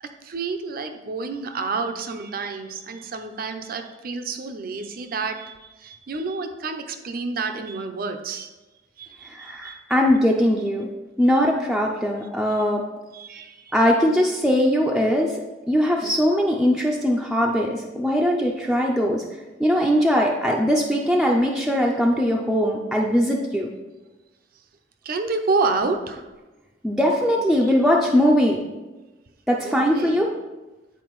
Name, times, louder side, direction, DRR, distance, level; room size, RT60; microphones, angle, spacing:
voice 1, 0.0-8.5 9.0-9.8 13.1-13.7 25.0-26.3 27.6-27.7 29.6-30.2, right 4 dB, 55° right, 7 dB, 0.5 m, -29 dB
voice 2, 9.3-10.9 11.2-12.8 13.7-15.4 15.7-19.2 19.6-23.7 26.8-28.6 29.5-30.3, equal, ahead, -2 dB, 0.4 m, -20 dB
9.1 x 4.3 x 3.1 m, 1.1 s
head